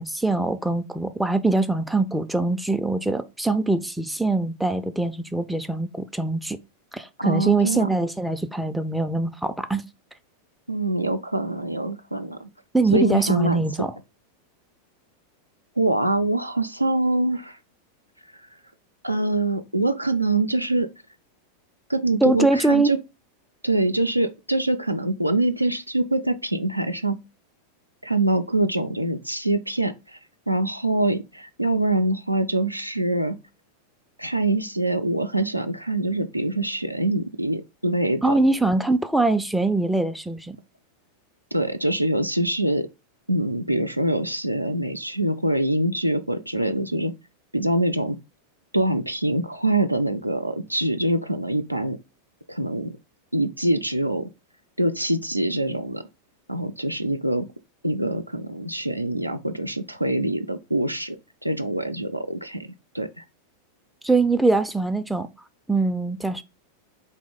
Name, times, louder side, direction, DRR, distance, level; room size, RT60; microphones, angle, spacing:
voice 1, 0.0-6.6 6.9-9.9 12.7-13.9 22.2-22.9 38.2-40.6 64.0-65.3 65.7-66.4, right 2 dB, ahead, 0.4 m, -23 dB
voice 2, 7.2-7.9 10.7-12.5 12.9-13.6 15.8-17.6 19.0-20.9 21.9-23.0 23.6-27.2 28.0-30.2 30.5-33.4 34.2-38.3 41.5-42.9 43.3-47.1 47.5-48.2 48.7-52.0 52.5-52.9 53.3-54.3 54.8-56.0 56.5-57.5 57.8-61.2 61.4-63.2, right 1 dB, 90° right, 0.4 m, -24 dB
4.2 x 3.1 x 3.5 m
figure-of-eight pair, 90°, 0 cm